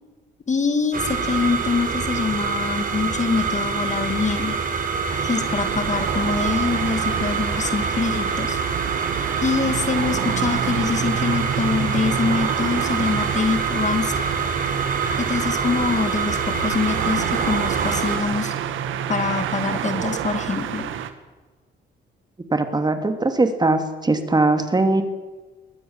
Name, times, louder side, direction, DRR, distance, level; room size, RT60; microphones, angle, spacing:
voice 1, 0.5-4.6 5.2-8.6 9.4-14.3 15.2-18.5 19.1-21.0, left 5 dB, 35° left, 9 dB, 2.4 m, -24 dB
sound 1, 0.9-18.2, right 5 dB, 45° right, 4.7 m, -26 dB
sound 2, 5.1-21.1, right 9 dB, 80° right, 2.0 m, -28 dB
voice 2, 22.5-25.0, right 2 dB, 20° right, 7 dB, 2.9 m, -20 dB
22.0 x 19.0 x 7.4 m, 1.3 s
cardioid pair, 90°, 20 cm